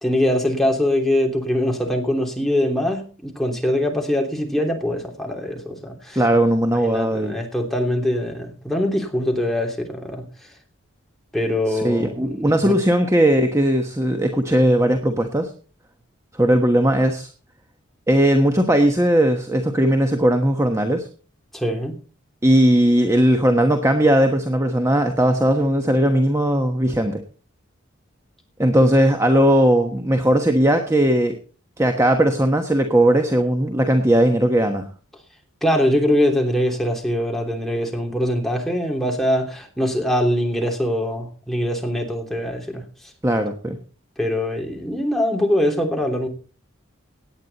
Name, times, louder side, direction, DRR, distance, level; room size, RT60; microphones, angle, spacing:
voice 1, 0.0-6.2 6.8-10.3 11.3-12.7 21.5-21.9 35.6-42.8 44.2-46.3, left 1 dB, ahead, 3.0 m, -22 dB
voice 2, 6.1-7.3 11.7-15.5 16.4-17.3 18.1-21.1 22.4-27.2 28.6-31.4 31.8-34.9 43.2-43.8, right 1 dB, 15° right, 1.2 m, -18 dB
17.5 x 9.5 x 4.1 m
head